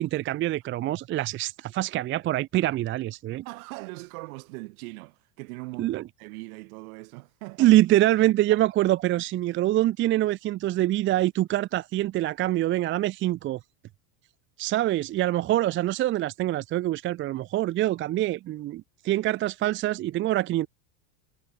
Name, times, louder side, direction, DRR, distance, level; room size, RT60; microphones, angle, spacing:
voice 1, 0.0-3.4 5.8-6.0 7.6-13.6 14.6-20.7, right 14 dB, 25° right, 0.9 m, -25 dB
voice 2, 3.4-7.7 8.5-8.6 9.1-9.2, right 27 dB, 55° right, 7.1 m, -40 dB
supercardioid pair, 165°, 50 cm